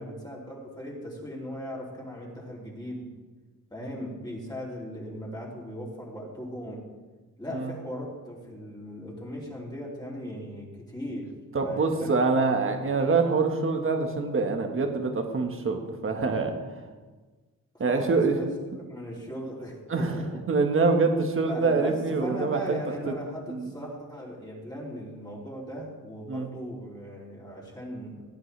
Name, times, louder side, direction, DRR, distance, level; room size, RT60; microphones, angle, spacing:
voice 1, 0.0-3.1 3.7-6.8 7.4-11.3 11.6-12.1 17.7-20.4 21.5-28.2, equal, 10° left, -4 dB, 3.2 m, -38 dB
voice 2, 11.5-16.5 17.8-18.4 19.9-20.1 20.5-22.8 23.5-23.6 26.3-26.5, right 4 dB, 40° right, 4 dB, 1.7 m, -25 dB
17.5 x 9.0 x 3.4 m, 1.3 s
cardioid pair, 110°, 33 cm